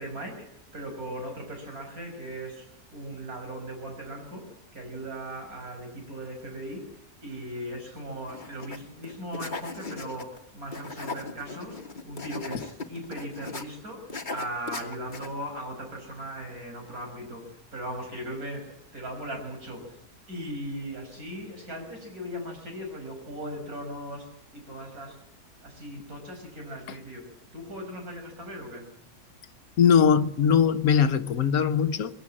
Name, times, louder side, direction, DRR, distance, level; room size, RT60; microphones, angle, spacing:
voice 1, 0.0-6.9 7.2-20.0 20.3-25.2 25.6-28.9, right 1 dB, 65° right, 6.3 m, -38 dB
sound 1, 8.3-8.8 9.0-10.4 10.7-13.6 14.1-15.3, left 3 dB, 30° left, 1.6 m, -38 dB
voice 2, 29.8-32.2, left 7 dB, 65° left, 1.5 m, -21 dB
21.0 x 17.5 x 8.6 m
omnidirectional pair, 1.6 m